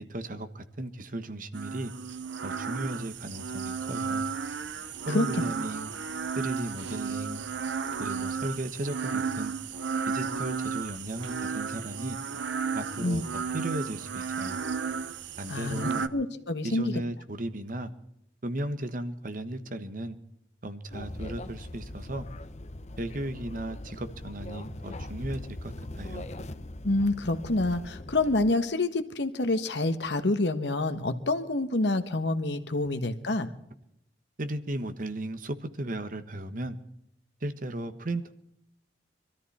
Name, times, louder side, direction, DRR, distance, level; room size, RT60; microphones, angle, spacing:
voice 1, 0.0-1.9 2.4-4.2 5.1-5.9 6.4-7.4 8.0-9.5 10.1-12.2 12.7-14.6 15.4-16.1 16.6-17.9 18.4-20.2 20.6-22.3 23.0-26.3 34.4-36.8 37.4-38.3, right 1 dB, 50° right, 10 dB, 1.2 m, -35 dB
sound 1, 1.5-16.1, right 5 dB, 90° right, 0.8 m, -33 dB
voice 2, 15.5-16.9 26.8-33.5, left 2 dB, 75° left, 9 dB, 1.4 m, -27 dB
sound 2, 20.9-28.5, left 1 dB, 40° left, 0.9 m, -41 dB
23.0 x 13.5 x 4.3 m, 0.79 s
head